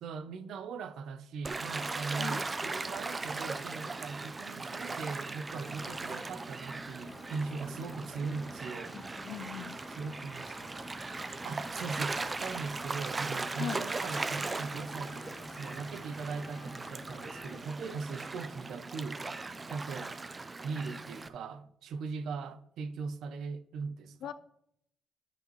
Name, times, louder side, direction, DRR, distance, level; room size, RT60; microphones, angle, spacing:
voice 1, 0.0-9.0 10.0-11.0 11.4-19.2 19.7-20.1 20.6-24.3, right 4 dB, 75° right, 0.6 m, -40 dB
Gull seagull / Waves surf, 1.4-21.3, right 3 dB, 25° right, 0.5 m, -39 dB
voice 2, 2.2-2.5 9.2-9.8 13.6-13.8 24.2-24.3, left 9 dB, 75° left, 0.4 m, -39 dB
sound 1, 5.4-17.6, left 3 dB, 25° left, 0.7 m, -51 dB
11.5 x 5.2 x 3.1 m
cardioid pair, 90°, 0 cm